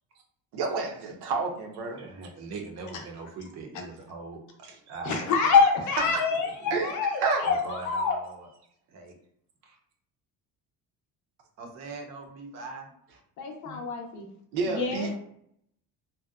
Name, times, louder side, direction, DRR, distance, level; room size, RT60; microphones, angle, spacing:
voice 1, 0.5-2.0 4.6-4.7 6.1-6.2 6.7-6.9 7.2-7.5 14.5-15.1, right 4 dB, 90° right, 2 dB, 0.7 m, -29 dB
voice 2, 1.9-4.4 4.9-5.6 6.1-6.8 7.4-8.5 8.9-9.1 9.6-9.8 11.6-13.0, right 3 dB, 45° right, 2 dB, 0.5 m, -41 dB
voice 3, 5.0-8.2 13.4-14.3 14.7-15.1, left 5 dB, 50° left, 3 dB, 0.5 m, -25 dB
2.6 x 2.1 x 2.3 m, 0.69 s
cardioid pair, 170°, 38 cm